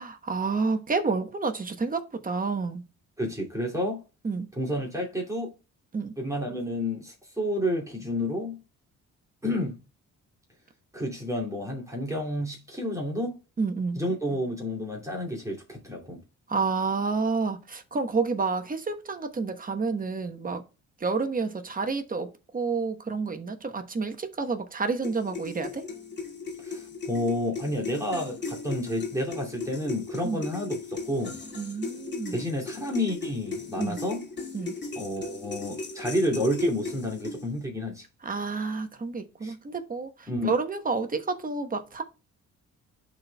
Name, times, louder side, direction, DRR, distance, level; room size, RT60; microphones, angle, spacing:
voice 1, 0.0-2.8 4.2-4.5 5.9-6.1 13.6-14.0 16.5-20.6 21.0-25.8 30.2-30.4 31.5-32.4 33.8-34.0 34.5-34.8 38.2-42.0, right 4 dB, 30° right, 1.1 m, -29 dB
voice 2, 3.2-4.0 4.6-5.5 6.2-8.6 9.4-9.8 10.9-13.4 14.0-16.2 26.6-31.4 32.3-34.2 35.0-38.0 39.4-39.5 40.3-40.5, left 1 dB, 10° right, 2.5 m, -30 dB
sound 1, 25.0-37.6, left 4 dB, 35° left, 2.3 m, -37 dB
11.0 x 4.3 x 2.3 m
cardioid pair, 90°, 30 cm